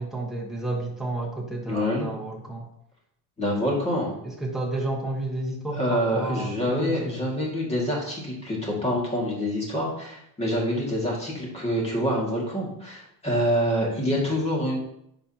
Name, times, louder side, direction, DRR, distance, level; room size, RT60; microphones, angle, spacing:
voice 1, 0.0-2.7 4.2-7.0, right 2 dB, ahead, -3 dB, 1.3 m, -31 dB
voice 2, 1.7-2.1 3.4-4.2 5.8-14.8, equal, 15° left, -3 dB, 2.3 m, -26 dB
10.5 x 5.4 x 3.0 m, 0.74 s
cardioid pair, 160°, 39 cm